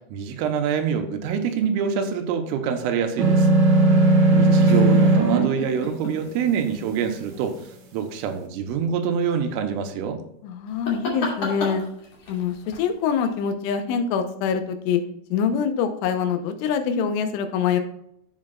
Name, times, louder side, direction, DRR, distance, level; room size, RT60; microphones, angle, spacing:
voice 1, 0.0-3.6 4.3-7.6 7.9-10.2, right 7 dB, 85° right, 5 dB, 3.4 m, -25 dB
sound 1, 3.2-5.4, right 2 dB, 60° right, 2.0 m, -16 dB
sound 2, 3.5-7.5 10.7-13.5, left 2 dB, 40° left, 2.6 m, -36 dB
voice 2, 3.8-4.2 10.4-11.8 12.3-15.0 15.3-17.8, left 7 dB, 80° left, 7 dB, 3.1 m, -25 dB
11.5 x 7.6 x 2.3 m, 0.77 s
omnidirectional pair, 6.0 m